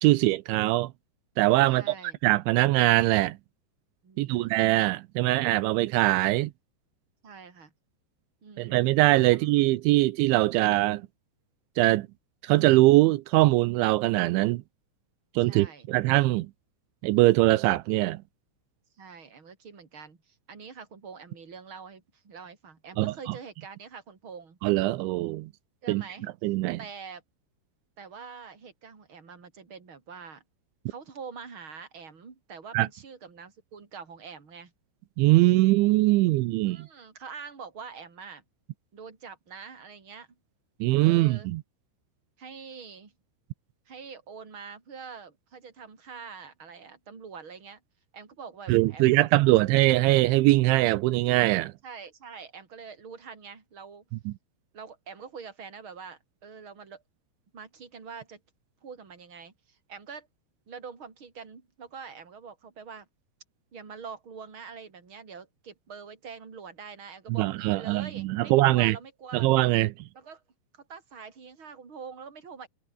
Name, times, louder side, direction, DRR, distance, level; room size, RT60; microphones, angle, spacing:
voice 1, 0.0-0.9 1.4-1.9 2.2-3.4 4.2-6.5 8.6-11.0 11.8-12.1 12.4-14.6 15.4-16.5 17.0-18.2 23.0-23.1 24.6-25.5 25.9-26.0 26.4-26.8 32.7-32.9 35.2-36.9 40.8-41.6 48.7-51.7 67.4-69.0 69.3-69.9, right 18 dB, 85° right, 3.2 m, -22 dB
voice 2, 1.6-2.2 4.0-4.5 7.2-7.7 8.4-8.9 9.3-9.6 15.4-15.9 19.0-24.6 25.8-26.3 26.8-27.2 28.0-30.4 30.9-34.7 36.6-38.4 38.9-40.3 41.0-41.5 42.4-43.1 43.9-47.8 48.1-49.6 51.8-54.0 54.7-57.0 57.5-58.4 58.8-60.3 60.7-63.1 63.7-69.5 70.1-70.4 70.7-72.7, right 6 dB, 30° right, 4.3 m, -45 dB
omnidirectional pair, 5.3 m